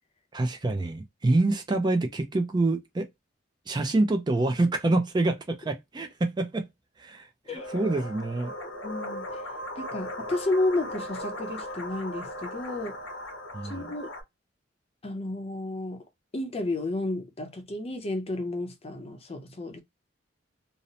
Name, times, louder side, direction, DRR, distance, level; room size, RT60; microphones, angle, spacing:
voice 1, 0.3-3.1 3.7-6.7 7.0-8.5 13.5-13.9, right 2 dB, 20° right, 0.4 m, -26 dB
sound 1, 7.6-14.2, left 1 dB, 70° left, 0.8 m, -38 dB
voice 2, 8.8-9.3 9.8-13.0 13.6-14.1 15.0-16.0 16.3-19.8, left 2 dB, 30° left, 0.5 m, -31 dB
2.6 x 2.0 x 2.8 m
head